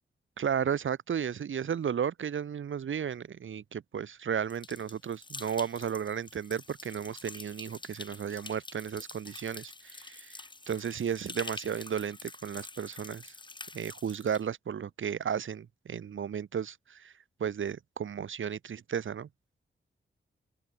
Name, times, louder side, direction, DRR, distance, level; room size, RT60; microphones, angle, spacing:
voice 1, 0.4-10.4 10.7-13.3 13.7-17.1 17.4-19.3, right 8 dB, 75° right, 1.4 m, -34 dB
sound 1, 4.5-14.4, left 3 dB, 20° left, 1.9 m, -47 dB
open air
wide cardioid pair, 155°, 20 cm